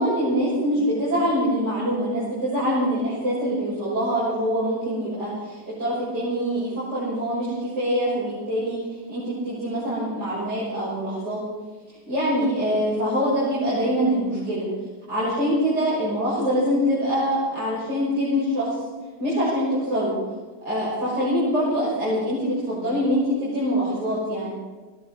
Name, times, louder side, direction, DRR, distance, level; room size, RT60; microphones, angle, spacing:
voice 1, 0.0-8.8 9.1-11.4 12.1-14.6 15.1-18.7 19.2-20.1 20.7-24.5, equal, 80° right, -10 dB, 7.1 m, -24 dB
22.5 x 16.5 x 3.9 m, 1.3 s
omnidirectional pair, 1.8 m